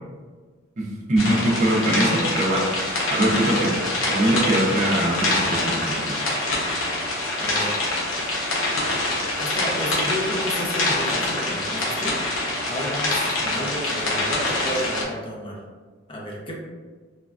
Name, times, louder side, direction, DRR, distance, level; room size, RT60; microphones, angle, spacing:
voice 1, 1.1-3.7 4.1-6.2, right 1 dB, 40° right, -2 dB, 0.5 m, -22 dB
sound 1, 1.2-15.0, left 2 dB, 85° left, 0.7 m, -25 dB
voice 2, 7.4-7.8 9.4-12.4 12.7-15.6 16.1-16.6, equal, 25° left, -2 dB, 0.5 m, -31 dB
3.1 x 2.3 x 2.3 m, 1.4 s
head